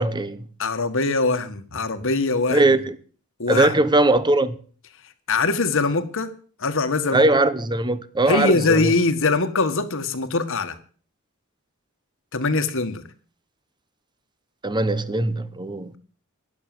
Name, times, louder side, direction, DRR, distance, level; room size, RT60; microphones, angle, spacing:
voice 1, 0.0-0.5 2.5-3.0 3.5-4.6 7.1-8.9 14.6-15.9, right 2 dB, 20° right, 1.0 m, -20 dB
voice 2, 0.6-2.7 3.4-3.7 5.3-6.3 6.6-7.2 8.3-10.8 12.3-13.0, left 3 dB, 65° left, 1.7 m, -22 dB
12.5 x 10.5 x 7.8 m
head